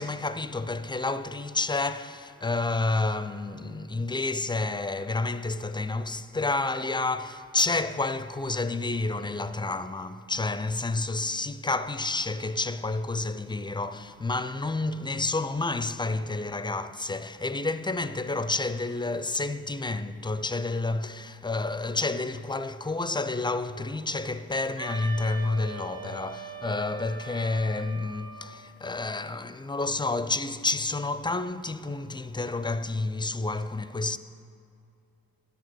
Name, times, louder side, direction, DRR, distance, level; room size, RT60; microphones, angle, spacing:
voice 1, 0.0-34.2, left 3 dB, 15° left, 0.4 m, -30 dB
Wind instrument woodwind instrument, 24.8-28.6, right 4 dB, 35° right, 1.2 m, -41 dB
10.5 x 7.0 x 6.2 m
cardioid pair, 55°, 37 cm